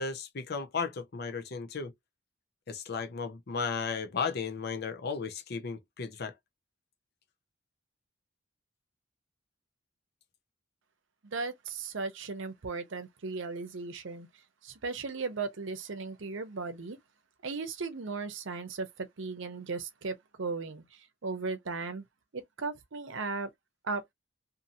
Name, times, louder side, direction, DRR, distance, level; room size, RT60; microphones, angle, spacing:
voice 1, 0.0-1.9 2.7-6.3, left 5 dB, 55° left, 0.6 m, -35 dB
voice 2, 11.2-14.3 14.6-17.0 17.4-22.0 22.3-23.5 23.8-24.1, right 4 dB, 70° right, 0.7 m, -36 dB
2.7 x 2.6 x 2.7 m
head